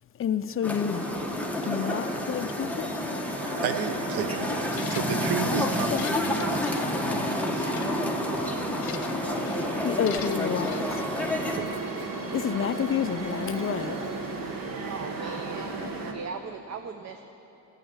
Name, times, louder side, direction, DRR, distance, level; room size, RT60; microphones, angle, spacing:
voice 1, 0.2-1.1 1.6-3.2 4.5-4.6 5.6-6.1 8.2-8.5 9.8-11.0 12.3-14.0, left 8 dB, 35° left, 12 dB, 0.5 m, -30 dB
sound 1, 0.6-11.6, left 1 dB, 5° left, 1.1 m, -30 dB
sound 2, 0.9-16.1, right 3 dB, 60° right, 1.5 m, -35 dB
voice 2, 3.6-7.7 11.5-11.7, right 6 dB, 90° right, 8 dB, 1.0 m, -33 dB
sound 3, 4.7-5.4 5.8-7.3 7.6-7.9 8.4-9.2 9.5-9.7 10.1-10.8, left 11 dB, 70° left, 0.8 m, -42 dB
voice 3, 14.6-15.8 16.1-17.2, right 5 dB, 45° right, 7 dB, 0.7 m, -38 dB
14.0 x 7.3 x 9.0 m, 3.0 s
cardioid pair, 100°, 38 cm